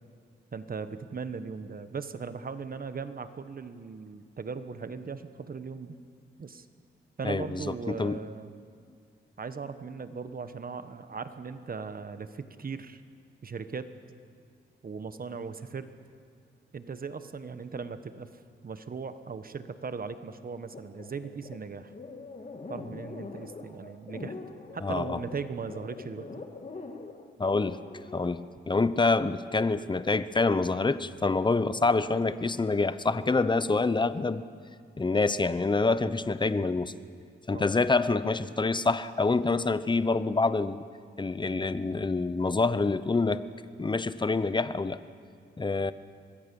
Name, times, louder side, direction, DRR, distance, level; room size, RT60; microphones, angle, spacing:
voice 1, 0.5-6.0 6.4-6.7 7.2-8.5 9.4-13.0 13.4-13.9 14.8-15.9 16.7-18.3 18.6-21.9 22.7-24.4 24.7-26.3 37.5-37.7, right 5 dB, 50° right, 10 dB, 1.3 m, -38 dB
voice 2, 7.2-8.2 24.8-25.2 27.4-27.8 28.1-34.4 35.0-36.9 37.5-40.9 41.2-43.4 43.8-45.0 45.6-45.9, left 3 dB, 25° left, 14 dB, 0.9 m, -26 dB
sound 1, 20.7-28.3, left 3 dB, 40° left, 2.3 m, -43 dB
25.0 x 21.0 x 7.0 m, 2.1 s
cardioid pair, 80°, 20 cm